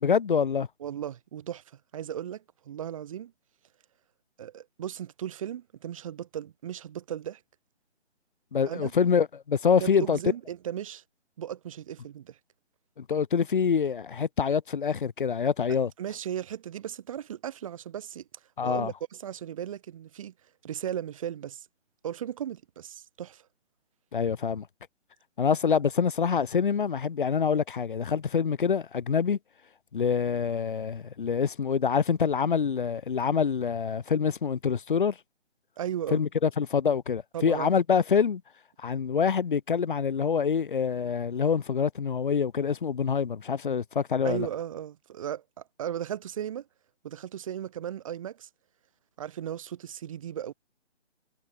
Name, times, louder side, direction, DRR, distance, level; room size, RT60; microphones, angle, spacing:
voice 1, 0.0-0.7 8.5-10.2 13.0-15.9 18.6-18.9 24.1-24.7 25.4-29.4 29.9-35.2 36.1-38.4 38.8-44.5, left 6 dB, 45° left, 2.7 m, -26 dB
voice 2, 0.8-1.6 1.9-3.3 4.4-7.4 8.7-8.9 9.8-11.0 11.4-12.4 16.0-18.2 18.6-20.3 20.6-21.7 22.0-23.4 35.8-36.2 37.3-37.7 44.2-46.7 47.0-48.5 49.2-50.5, right 10 dB, 30° right, 3.4 m, -36 dB
hypercardioid pair, 165°, 36 cm